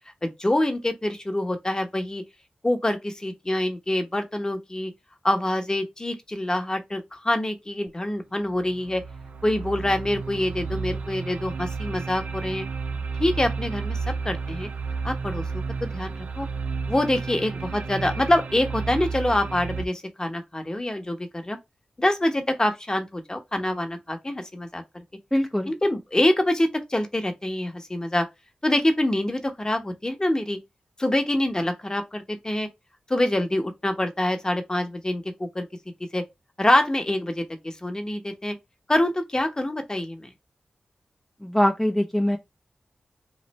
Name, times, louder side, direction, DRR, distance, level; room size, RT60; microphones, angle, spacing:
voice 1, 0.2-2.2 2.6-4.9 5.2-9.0 9.4-12.6 13.2-14.0 14.2-14.7 15.0-16.5 16.9-21.6 22.0-24.8 25.7-28.2 28.6-30.6 31.0-32.7 33.1-35.7 36.1-36.2 36.6-38.5 38.9-40.3, left 1 dB, 25° left, 0.9 m, -25 dB
sound 1, 8.5-19.9, right 4 dB, 70° right, 0.4 m, -32 dB
voice 2, 25.3-25.7 41.4-42.4, equal, 10° left, 0.6 m, -22 dB
3.1 x 2.5 x 4.1 m
cardioid pair, 50°, 3 cm